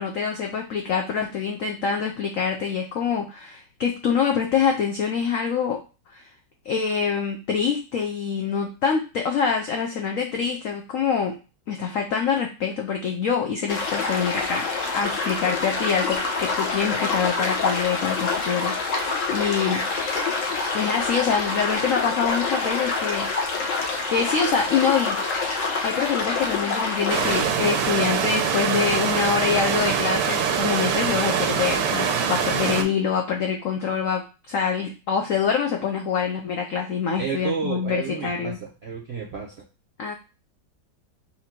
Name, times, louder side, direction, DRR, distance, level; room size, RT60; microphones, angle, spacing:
voice 1, 0.0-5.8 6.1-6.3 6.6-11.4 11.7-19.9 20.7-23.7 24.1-25.2 25.8-38.6 40.0-40.1, left 6 dB, 80° left, 2 dB, 0.7 m, -25 dB
sound 1, 13.7-27.4, left 3 dB, 55° left, 1.0 m, -26 dB
sound 2, 27.1-32.8, right 7 dB, 80° right, 1.4 m, -23 dB
voice 2, 37.2-39.6, right 6 dB, 65° right, -3 dB, 0.6 m, -31 dB
4.3 x 2.6 x 4.3 m, 0.32 s
omnidirectional pair, 2.1 m